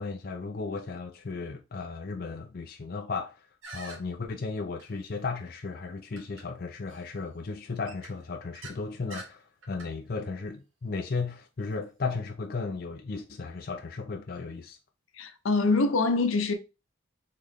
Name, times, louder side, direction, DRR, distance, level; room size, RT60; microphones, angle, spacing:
voice 1, 0.0-3.5 3.7-14.8, left 4 dB, 45° left, 0.4 m, -35 dB
sound 1, 3.6-4.0 4.8-4.9 6.2-6.4 6.9-7.0 7.9-8.8 9.1-9.3 9.6-9.9, right 3 dB, 80° right, 1.2 m, -45 dB
voice 2, 15.2-16.5, left 3 dB, 80° left, 0.7 m, -24 dB
3.8 x 3.2 x 3.5 m
head